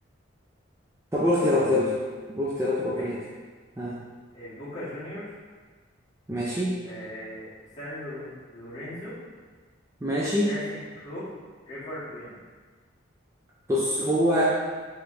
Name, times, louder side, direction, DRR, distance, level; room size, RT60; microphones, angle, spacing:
voice 1, 1.1-2.0 2.3-3.2 3.8-4.0 6.3-6.8 10.0-10.5 13.7-14.6, left 1 dB, 15° right, -7 dB, 0.3 m, -24 dB
voice 2, 4.3-5.3 6.8-7.5 7.8-9.2 10.4-11.3 11.6-12.4, left 1 dB, 30° left, -11 dB, 1.3 m, -38 dB
4.6 x 2.9 x 2.5 m, 1.4 s
head